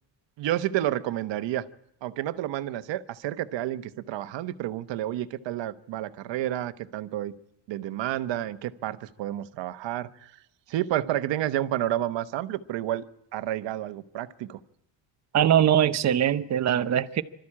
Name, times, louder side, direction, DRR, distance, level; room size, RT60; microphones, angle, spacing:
voice 1, 0.4-1.7 2.0-7.3 7.7-10.3 10.7-13.0 13.3-14.6, right 13 dB, 75° right, 1.1 m, -30 dB
voice 2, 15.3-17.2, right 10 dB, 40° right, 0.8 m, -22 dB
25.5 x 13.0 x 8.6 m
cardioid pair, 155°, 44 cm